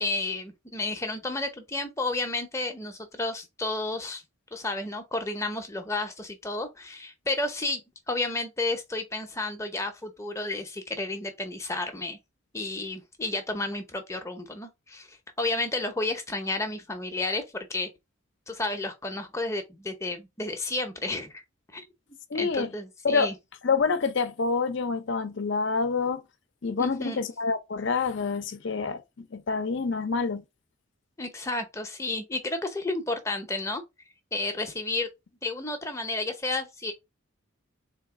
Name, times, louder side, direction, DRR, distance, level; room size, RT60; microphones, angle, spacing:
voice 1, 0.0-4.2 4.5-7.8 8.1-12.2 12.5-17.4 17.7-17.9 18.5-21.4 21.7-21.9 22.3-23.3 26.8-27.2 31.2-33.8 34.3-35.1 35.4-36.9, left 2 dB, 15° left, 0.7 m, -31 dB
voice 2, 22.3-22.7 23.0-23.3 23.6-26.2 26.6-30.4, left 4 dB, 60° left, 0.6 m, -27 dB
4.0 x 2.9 x 3.5 m
head